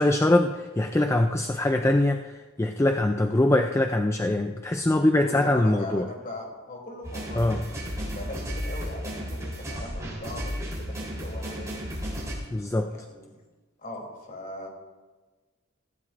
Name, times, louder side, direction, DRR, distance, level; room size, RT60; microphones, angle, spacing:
voice 1, 0.0-2.3 2.6-6.1 7.3-7.6 12.5-12.9, left 1 dB, 15° left, 5 dB, 0.4 m, -23 dB
voice 2, 5.2-11.7 12.9-13.4 13.8-14.7, left 2 dB, 40° left, 0 dB, 3.1 m, -40 dB
sound 1, 7.0-12.4, equal, 15° right, 3.7 m, -33 dB
17.5 x 15.5 x 2.6 m, 1.3 s
head